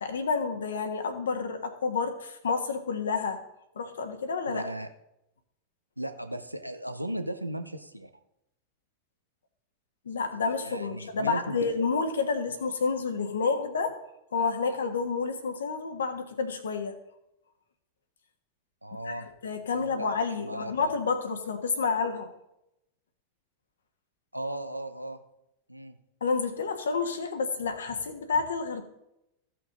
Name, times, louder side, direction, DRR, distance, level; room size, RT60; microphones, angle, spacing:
voice 1, 0.0-3.4 3.7-4.7 10.0-14.0 14.3-16.9 19.0-22.3 26.2-28.8, left 4 dB, 65° left, 6 dB, 1.3 m, -29 dB
voice 2, 4.5-4.9 6.0-8.1 10.6-11.6 18.8-19.3 19.7-20.1 20.4-20.9 24.3-25.2 25.7-25.9, right 1 dB, 90° right, 8 dB, 0.8 m, -36 dB
15.0 x 5.9 x 3.9 m, 0.84 s
figure-of-eight pair, 90°, 0 cm